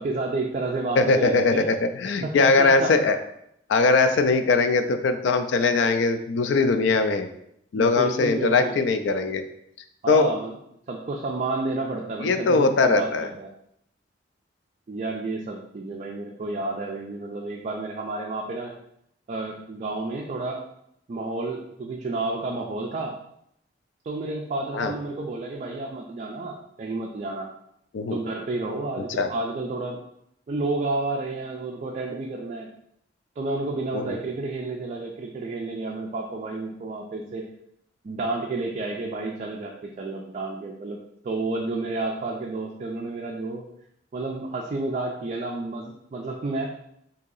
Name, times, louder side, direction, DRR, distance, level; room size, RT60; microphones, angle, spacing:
voice 1, 0.0-1.7 2.2-2.9 7.8-8.8 10.0-10.6 10.9-13.5 14.9-18.7 19.3-20.6 21.1-23.2 24.0-27.5 28.1-30.0 30.5-32.7 33.4-37.5 38.0-43.6 44.1-46.7, right 2 dB, 40° right, 0 dB, 0.3 m, -30 dB
voice 2, 1.0-3.2 3.7-7.3 7.7-9.4 10.1-10.3 12.2-13.3 24.7-24.9 27.9-28.2 29.2-29.3 33.9-34.2, left 3 dB, 75° left, 8 dB, 0.4 m, -21 dB
2.8 x 2.7 x 3.8 m, 0.76 s
head